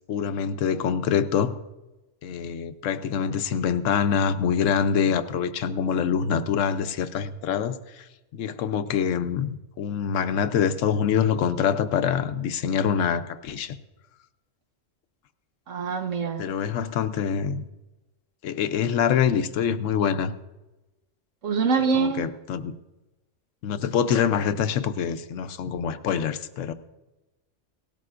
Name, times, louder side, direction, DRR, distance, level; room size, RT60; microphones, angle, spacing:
voice 1, 0.1-1.6 2.2-8.0 8.3-13.7 16.4-17.7 18.4-20.3 21.9-22.7 23.6-26.7, left 7 dB, 90° left, 11 dB, 1.0 m, -25 dB
voice 2, 15.7-16.5 21.4-22.3, right 5 dB, 80° right, 4 dB, 1.5 m, -24 dB
18.0 x 12.5 x 2.5 m, 1.1 s
omnidirectional pair, 1.3 m